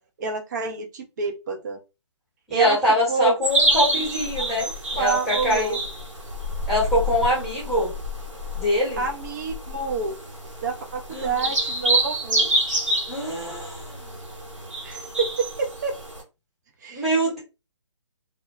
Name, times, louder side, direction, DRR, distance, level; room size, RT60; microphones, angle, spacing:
voice 1, 0.2-1.8 2.5-2.8 3.1-3.3 3.7-4.5 5.0-5.8 9.0-10.2 10.6-12.5 14.8-15.9 16.8-17.1, right 4 dB, 35° right, 5 dB, 0.5 m, -28 dB
voice 2, 2.5-4.7 4.9-5.8 6.7-7.9 8.5-9.0 11.1-11.4 13.1-14.0 16.9-17.4, equal, ahead, -7 dB, 1.0 m, -23 dB
sound 1, 3.4-16.2, right 1 dB, 80° right, 1.1 m, -28 dB
2.2 x 2.1 x 2.6 m, 0.27 s
figure-of-eight pair, 150°, 16 cm